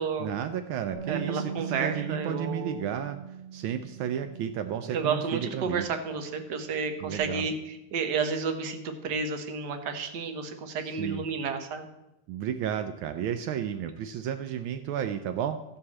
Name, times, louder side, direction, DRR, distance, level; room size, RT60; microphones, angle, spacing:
voice 1, 0.2-3.2 3.5-5.8 7.0-7.5 10.8-11.2 12.3-15.6, right 9 dB, 85° right, 9 dB, 1.4 m, -32 dB
Bass guitar, 0.9-7.2, right 8 dB, 40° right, 2.9 m, -41 dB
voice 2, 1.1-2.8 4.9-11.9, right 5 dB, 60° right, 7 dB, 1.6 m, -31 dB
14.0 x 4.8 x 7.1 m, 0.91 s
omnidirectional pair, 2.2 m